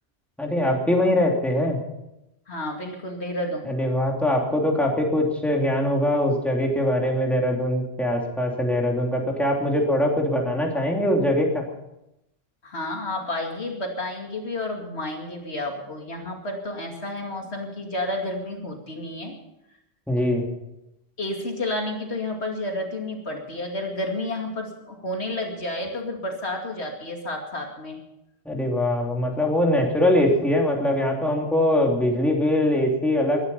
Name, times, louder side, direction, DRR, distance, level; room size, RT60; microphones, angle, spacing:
voice 1, 0.4-1.8 3.6-11.7 20.1-20.4 28.4-33.5, left 1 dB, ahead, -1 dB, 3.1 m, -22 dB
voice 2, 2.5-3.7 12.6-19.3 21.2-28.0, left 1 dB, 60° left, 1 dB, 2.7 m, -31 dB
21.5 x 11.0 x 5.6 m, 0.87 s
omnidirectional pair, 1.2 m